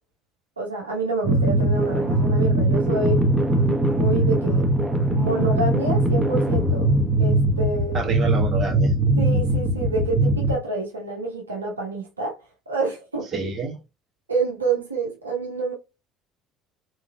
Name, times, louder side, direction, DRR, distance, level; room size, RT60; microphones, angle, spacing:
voice 1, 0.6-3.2 3.5-4.7 5.1-6.9 7.2-8.0 9.2-12.4 12.7-13.3 14.3-15.7, right 3 dB, 90° right, 0.7 m, -28 dB
sound 1, 1.2-10.6, right 1 dB, 10° right, 1.0 m, -21 dB
voice 2, 7.9-8.9 13.3-13.8, right 4 dB, 40° right, 1.4 m, -27 dB
3.8 x 3.0 x 2.3 m
figure-of-eight pair, 60°, 0 cm